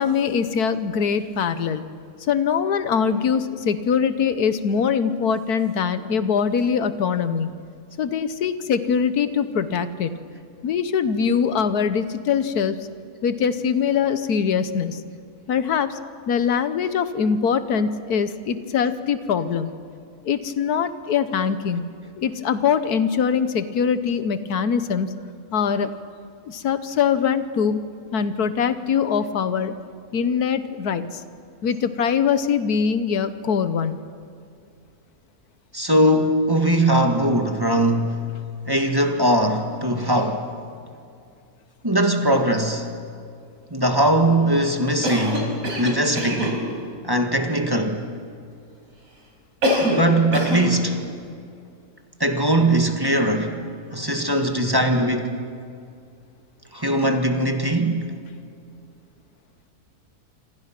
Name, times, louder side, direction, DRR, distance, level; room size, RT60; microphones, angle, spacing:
voice 1, 0.0-1.8 2.3-7.5 8.0-10.1 10.6-12.8 13.2-15.0 15.5-16.0 16.3-19.7 20.2-21.8 22.2-25.1 25.5-25.9 26.4-27.8 28.1-29.8 30.1-31.2 31.6-34.0, left 7 dB, 80° left, 12 dB, 1.5 m, -22 dB
voice 2, 35.7-38.3 38.7-40.5 41.8-42.9 43.7-46.6 47.0-48.0 49.8-51.0 52.2-53.6 53.9-55.4 56.7-58.2, right 1 dB, 15° right, 4 dB, 1.7 m, -20 dB
Cough, 45.0-46.6 49.6-50.1 50.3-50.7, equal, 65° right, 5.2 m, -23 dB
27.5 x 26.5 x 6.0 m, 2.4 s
omnidirectional pair, 1.6 m